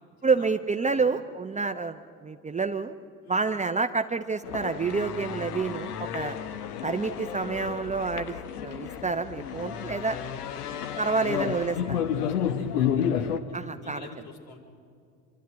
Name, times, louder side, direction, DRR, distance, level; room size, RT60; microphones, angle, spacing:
voice 1, 0.2-2.9 3.3-6.4 6.8-10.2 11.0-12.0 13.5-14.1, right 4 dB, 15° right, 7 dB, 0.8 m, -28 dB
sound 1, 4.4-13.4, left 9 dB, 75° left, 1.2 m, -31 dB
voice 2, 10.4-14.6, left 4 dB, 50° left, 1 dB, 4.8 m, -48 dB
26.0 x 13.0 x 9.4 m, 2.3 s
figure-of-eight pair, 65°, 46 cm